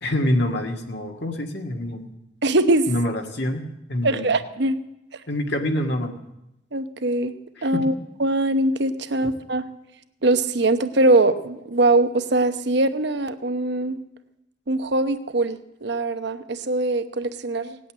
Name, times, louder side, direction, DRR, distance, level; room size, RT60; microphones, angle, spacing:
voice 1, 0.0-2.1 2.9-3.6 3.9-4.3 5.3-6.1 7.6-7.8, left 1 dB, 60° left, 3 dB, 1.9 m, -26 dB
voice 2, 2.4-2.9 4.0-4.8 6.7-7.3 7.6-7.9 8.2-9.6 10.2-14.0 14.7-17.8, right 2 dB, 60° right, 10 dB, 0.9 m, -22 dB
18.0 x 8.5 x 9.0 m, 0.88 s
head